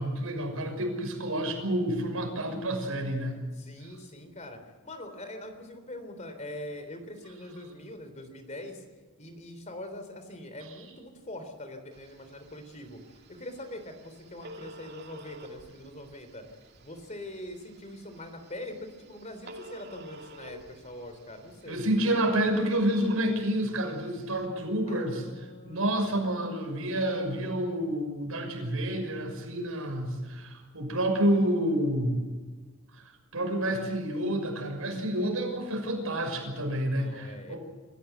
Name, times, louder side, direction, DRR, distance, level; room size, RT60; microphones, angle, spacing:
voice 1, 0.0-3.4 21.7-25.3 25.6-32.2 32.9-33.0 33.3-37.6, right 1 dB, 80° right, 3 dB, 6.3 m, -29 dB
voice 2, 3.5-8.8 9.2-13.0 13.3-16.5 16.8-21.8 24.9-26.1 36.9-37.5, left 1 dB, 35° left, 7 dB, 3.6 m, -43 dB
Telephone, 11.9-24.5, right 1 dB, 50° right, 2.4 m, -51 dB
27.0 x 15.0 x 8.1 m, 1.3 s
head